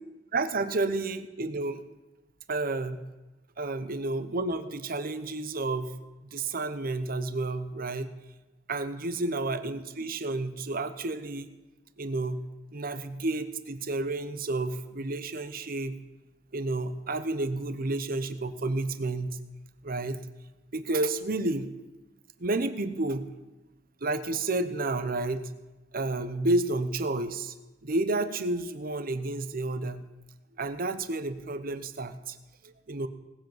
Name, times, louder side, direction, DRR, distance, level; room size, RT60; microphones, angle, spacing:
voice 1, 0.3-1.8 2.5-3.0 3.6-5.9 6.2-8.1 8.7-11.5 12.0-12.4 12.7-15.9 16.5-19.4 19.8-20.2 20.7-21.7 22.4-23.2 24.0-25.5 25.9-27.5 27.8-30.1 30.6-32.4 32.6-33.1, right 2 dB, 50° right, 11 dB, 0.9 m, -30 dB
18.5 x 7.9 x 7.4 m, 1.1 s
head